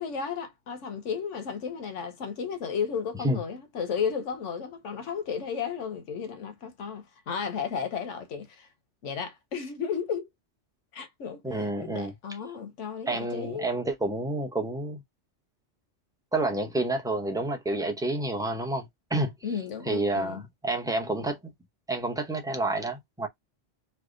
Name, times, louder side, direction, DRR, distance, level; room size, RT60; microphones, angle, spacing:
voice 1, 0.0-8.7 9.0-10.3 10.9-13.6 19.4-20.4, left 6 dB, 75° left, 1.1 m, -34 dB
voice 2, 11.4-12.1 13.1-15.0 16.3-19.3 19.9-21.4 21.9-23.3, right 2 dB, 5° right, 0.5 m, -29 dB
3.3 x 2.0 x 3.7 m
omnidirectional pair, 1.3 m